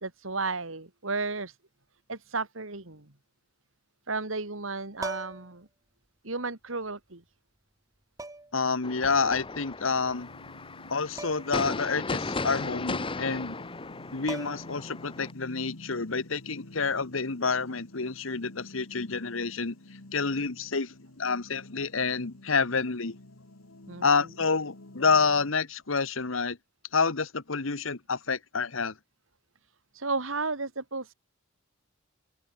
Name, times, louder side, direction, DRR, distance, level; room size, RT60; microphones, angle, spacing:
voice 1, 0.0-1.6 2.1-3.1 4.1-5.7 6.2-7.2 23.9-24.0 29.9-31.1, right 3 dB, 70° right, 2.7 m, -33 dB
sound 1, 5.0-5.6 6.9-7.0 8.2-8.6 11.2-11.6 11.9-12.0 13.9-14.0 14.3-14.9 16.8-17.0, right 2 dB, 15° right, 3.9 m, -39 dB
voice 2, 8.5-10.3 10.9-13.6 14.1-19.7 20.1-23.2 24.0-26.6 26.9-28.9, left 4 dB, 70° left, 1.3 m, -28 dB
sound 2, 8.8-15.3, left 3 dB, 25° left, 1.1 m, -36 dB
sound 3, 10.1-25.5, left 1 dB, 85° left, 2.2 m, -50 dB
open air
head